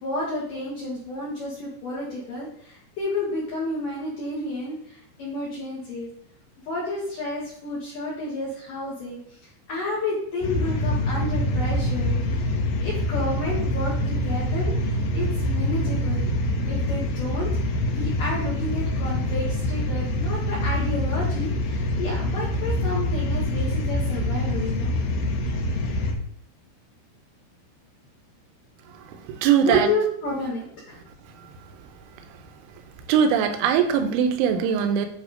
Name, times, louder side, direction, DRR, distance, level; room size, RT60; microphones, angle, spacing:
voice 1, 0.0-6.1 6.7-9.4 9.7-12.5 12.8-16.3 16.7-25.0 29.6-31.0, left 2 dB, 60° left, -6 dB, 2.5 m, -31 dB
sound 1, 10.4-26.1, left 1 dB, 80° left, 2.1 m, -25 dB
voice 2, 29.4-29.9 33.1-35.1, right 8 dB, 85° right, 7 dB, 3.2 m, -20 dB
9.6 x 3.4 x 5.0 m, 0.66 s
omnidirectional pair, 5.5 m